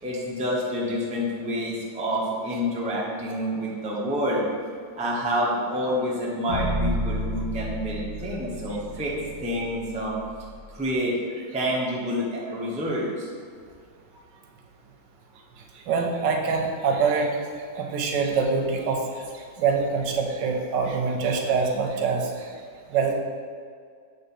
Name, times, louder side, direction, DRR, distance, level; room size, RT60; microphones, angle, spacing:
voice 1, 0.0-4.5 4.9-9.1 9.4-10.1 10.7-11.1 11.5-13.3, equal, 5° right, -5 dB, 0.5 m, -28 dB
sound 1, 6.5-10.7, equal, 65° left, 1.7 m, -31 dB
voice 2, 15.9-17.4 17.7-19.0 19.3-22.5 22.9-23.2, right 5 dB, 85° right, 2 dB, 1.4 m, -24 dB
6.9 x 3.5 x 4.2 m, 2.1 s
omnidirectional pair, 1.9 m